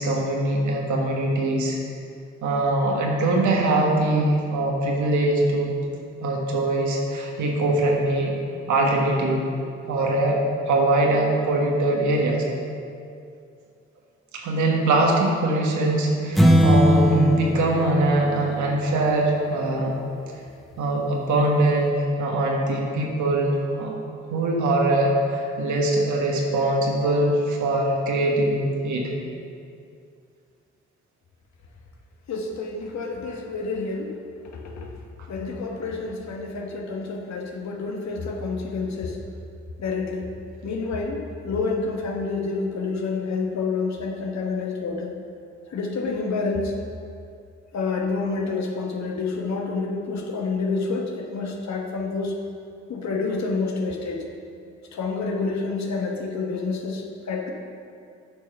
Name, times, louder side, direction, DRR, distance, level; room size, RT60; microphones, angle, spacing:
voice 1, 0.0-1.8 2.4-5.7 6.2-8.4 8.7-9.4 9.9-10.4 10.7-12.4 14.3-19.9 20.8-24.0 24.3-29.1, right 2 dB, 75° right, -1 dB, 1.5 m, -22 dB
sound 1, 16.4-19.0, equal, ahead, 0.9 m, -19 dB
voice 2, 32.3-34.1 34.5-34.9 35.3-39.2 39.8-40.3 40.6-45.1 45.7-46.8 47.7-52.4 52.9-54.2 54.9-57.5, left 4 dB, 65° left, 1 dB, 1.3 m, -28 dB
8.4 x 4.8 x 5.6 m, 2.4 s
supercardioid pair, 50°, 30 cm